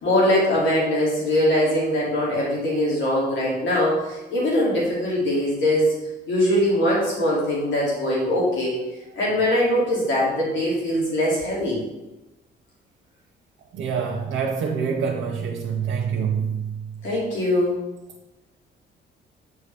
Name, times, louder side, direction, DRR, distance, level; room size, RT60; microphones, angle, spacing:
voice 1, 0.0-5.9 6.3-8.7 9.2-11.8 17.0-17.7, left 1 dB, 70° left, -5 dB, 2.6 m, -22 dB
voice 2, 13.7-16.9, right 6 dB, 80° right, -1 dB, 0.9 m, -26 dB
8.7 x 4.8 x 3.4 m, 1.0 s
cardioid pair, 90°, 20 cm